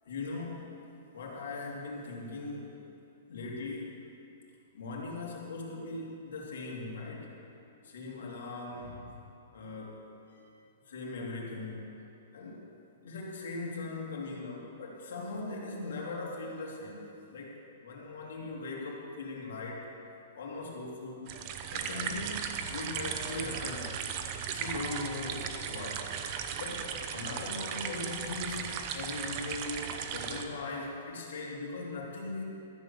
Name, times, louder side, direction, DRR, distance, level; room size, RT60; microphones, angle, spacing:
voice 1, 0.0-0.7 1.1-2.9 3.3-3.9 4.7-7.3 7.8-9.2 9.5-10.4 10.9-11.9 12.3-12.6 13.0-17.5 17.8-19.8 20.3-21.3 21.7-23.9 24.5-26.0 26.6-32.4, left 3 dB, 75° left, -2 dB, 2.9 m, -40 dB
sound 1, 21.3-30.4, right 7 dB, 30° right, 0.7 m, -37 dB
13.5 x 7.6 x 7.0 m, 2.7 s
hypercardioid pair, 165°, 0 cm